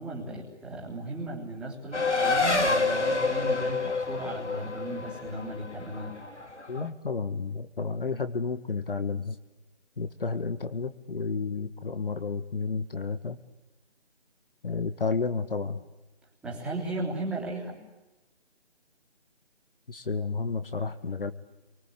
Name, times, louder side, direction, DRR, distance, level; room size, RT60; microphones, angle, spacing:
voice 1, 0.0-6.2 16.4-17.8, right 2 dB, 5° right, -5 dB, 3.5 m, -36 dB
Race car auto racing, 1.9-6.9, left 3 dB, 80° left, 3.2 m, -28 dB
voice 2, 6.7-9.4 10.0-13.4 14.6-15.8 19.9-21.3, left 4 dB, 50° left, 9 dB, 1.5 m, -31 dB
29.0 x 24.0 x 8.5 m, 1.0 s
figure-of-eight pair, 160°, 35 cm